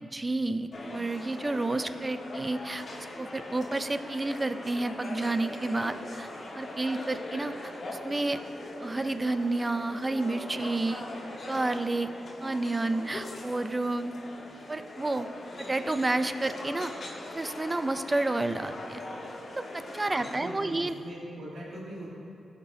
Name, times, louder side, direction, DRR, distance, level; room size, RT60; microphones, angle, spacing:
voice 1, 0.0-2.9 3.2-6.3 6.5-8.4 8.8-11.0 11.5-12.1 12.4-14.1 14.7-15.3 15.6-17.0 17.3-19.0 19.6-20.9, right 2 dB, 25° right, 11 dB, 0.4 m, -30 dB
sound 1, 0.7-20.4, left 2 dB, 55° left, 1.4 m, -41 dB
voice 2, 20.4-22.1, right 1 dB, 85° right, -6 dB, 1.6 m, -40 dB
15.0 x 5.1 x 2.8 m, 2.7 s
cardioid pair, 55°, 0 cm